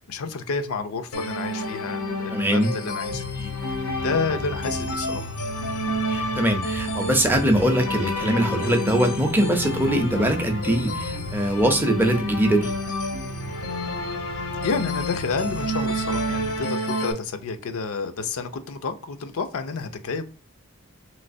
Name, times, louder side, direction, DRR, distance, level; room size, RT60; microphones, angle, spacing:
voice 1, 0.0-5.3 14.6-20.2, left 4 dB, 70° left, 8 dB, 0.5 m, -30 dB
sound 1, 1.1-17.1, left 1 dB, 90° left, 0.8 m, -29 dB
voice 2, 2.3-2.7 6.1-12.7, right 1 dB, 10° right, 4 dB, 0.5 m, -22 dB
sound 2, 3.0-16.6, right 2 dB, 65° right, 0.4 m, -39 dB
3.1 x 2.9 x 2.6 m, 0.35 s
head